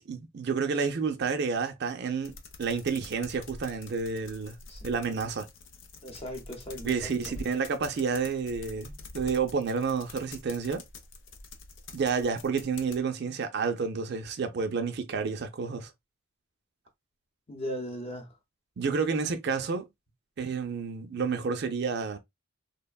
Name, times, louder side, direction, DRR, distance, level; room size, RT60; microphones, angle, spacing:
voice 1, 0.0-4.6 4.8-5.5 6.8-10.8 11.9-15.9 18.8-19.9 20.4-22.2, right 5 dB, 55° right, 0.4 m, -30 dB
sound 1, 2.2-13.0, left 3 dB, 60° left, 0.5 m, -47 dB
voice 2, 6.0-7.2 17.5-18.3, equal, 30° left, 0.8 m, -37 dB
3.3 x 2.1 x 2.2 m
head